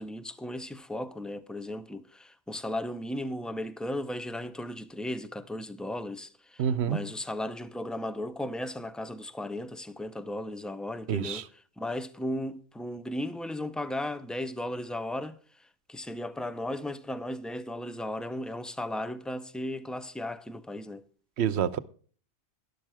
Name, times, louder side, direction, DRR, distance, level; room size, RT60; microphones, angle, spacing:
voice 1, 0.0-11.5 11.8-21.1, left 1 dB, ahead, 0.4 m, -36 dB
voice 2, 6.6-7.0 11.1-11.4 21.4-21.8, right 8 dB, 70° right, 1.0 m, -27 dB
12.0 x 11.5 x 3.5 m
omnidirectional pair, 1.2 m